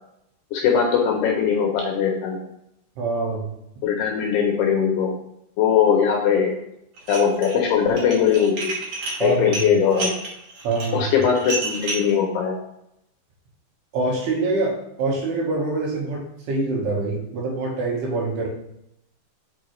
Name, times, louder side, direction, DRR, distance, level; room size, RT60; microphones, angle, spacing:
voice 1, 0.5-2.4 3.8-5.2 5.6-6.6 7.1-8.7 9.2-10.1 10.9-12.6, left 7 dB, 75° left, 0 dB, 2.5 m, -20 dB
voice 2, 3.0-3.5 9.2-9.5 10.6-11.0 13.9-18.5, right 3 dB, 70° right, -3 dB, 2.9 m, -25 dB
Dishes pots and pans, 7.0-7.6 7.9-12.1, right 2 dB, 85° right, 1.5 m, -30 dB
6.7 x 5.5 x 3.1 m, 0.79 s
omnidirectional pair, 5.4 m